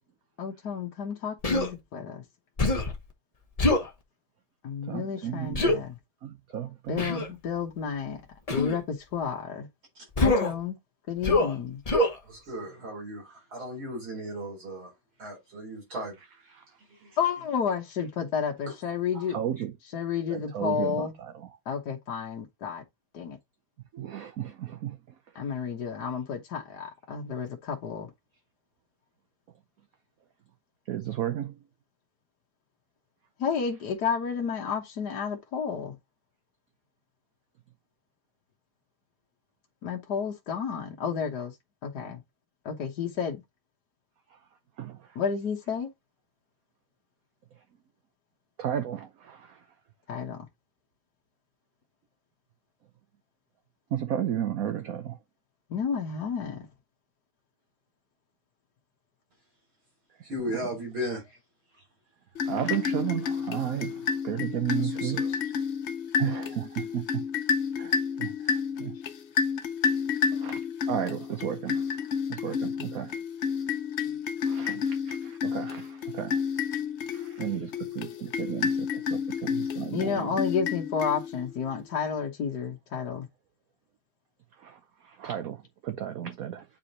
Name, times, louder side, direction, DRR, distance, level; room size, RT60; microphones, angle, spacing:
voice 1, 0.4-2.2 4.6-6.0 6.9-8.2 8.5-9.7 10.2-10.8 11.1-11.8 17.2-19.4 19.8-21.2 21.7-22.8 23.1-23.4 25.3-28.1 33.4-36.0 39.8-41.5 41.8-42.2 42.6-43.4 45.1-45.9 50.1-50.5 55.7-56.7 65.3-65.4 79.9-83.3, left 6 dB, 55° left, 1.6 m, -31 dB
Human voice, 1.4-1.7 2.6-3.0 3.6-3.9 5.5-5.8 7.0-7.3 8.5-8.8 10.2-10.5 11.2-11.5 11.9-12.2, left 2 dB, 25° left, 0.9 m, -24 dB
voice 2, 4.9-5.7 6.2-7.1 19.3-19.7 20.3-21.3 23.9-25.0 30.9-31.5 44.8-45.0 48.6-49.5 53.9-55.2 62.5-65.2 66.2-67.2 67.8-68.9 70.4-70.6 70.9-71.8 72.3-73.1 74.5-76.4 77.1-80.3 84.6-84.7 85.2-85.6 85.8-86.6, right 10 dB, 60° right, 0.9 m, -33 dB
voice 3, 12.2-14.9 15.2-16.2 16.9-17.1 18.7-18.8 19.1-19.3 60.2-61.2 64.7-65.5, equal, 80° right, 4.9 m, -36 dB
sound 1, 62.3-81.6, left 6 dB, 85° left, 0.6 m, -30 dB
8.6 x 4.8 x 2.8 m
omnidirectional pair, 2.2 m